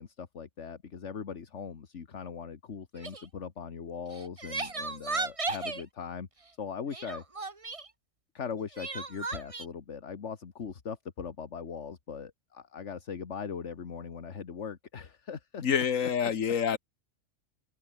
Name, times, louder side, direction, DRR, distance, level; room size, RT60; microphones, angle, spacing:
voice 1, 0.0-6.3 6.6-7.2 8.3-15.6 16.0-16.3, left 6 dB, 65° left, 1.8 m, -40 dB
Crying sobbing, 3.0-3.3 4.1-5.8 6.9-7.9 8.8-9.7, right 3 dB, 25° right, 1.4 m, -35 dB
voice 2, 15.6-16.8, left 7 dB, 85° left, 1.7 m, -27 dB
open air
omnidirectional pair, 1.3 m